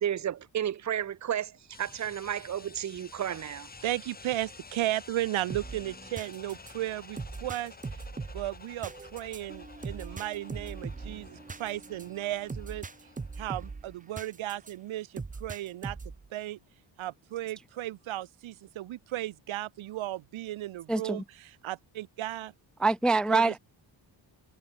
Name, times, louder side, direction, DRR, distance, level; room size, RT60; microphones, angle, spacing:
voice 1, 0.0-3.7, right 10 dB, 35° right, 0.8 m, -32 dB
sound 1, 1.7-13.7, left 4 dB, 20° left, 2.3 m, -51 dB
voice 2, 3.8-8.0 8.3-12.8 13.4-16.0 16.3-16.6 17.0-22.5 23.3-23.5, right 14 dB, 85° right, 1.3 m, -35 dB
sound 2, 5.5-14.7 15.2-16.3, right 4 dB, 15° right, 1.1 m, -41 dB
voice 3, 20.9-21.2 22.8-23.6, right 3 dB, ahead, 0.4 m, -25 dB
wide cardioid pair, 160°, 46 cm